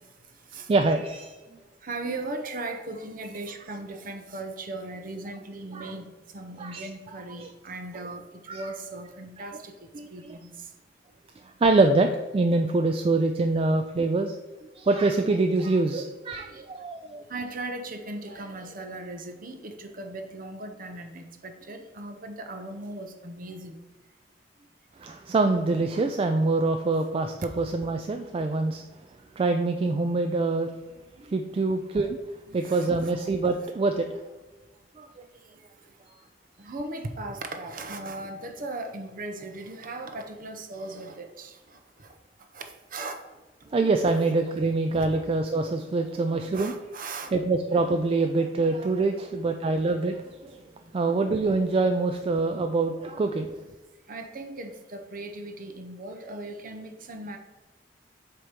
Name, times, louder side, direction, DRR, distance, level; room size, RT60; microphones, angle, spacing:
voice 1, 0.7-1.4 5.7-5.9 6.6-6.9 7.4-7.5 8.5-8.7 9.5-9.6 9.9-10.4 11.6-14.4 14.8-17.2 25.0-28.8 29.4-30.7 31.3-32.2 32.5-34.1 35.0-35.1 43.7-46.7 47.3-50.6 50.9-53.6, right 3 dB, 30° right, 5 dB, 0.3 m, -25 dB
voice 2, 1.8-8.2 8.5-9.7 10.1-10.5 16.3-16.7 17.3-23.8 31.3-31.4 32.5-33.1 36.6-42.1 42.5-42.7 42.9-43.1 44.9-45.1 46.5-47.3 54.1-57.4, right 2 dB, 50° right, 6 dB, 0.7 m, -38 dB
7.7 x 2.9 x 5.1 m, 1.2 s
head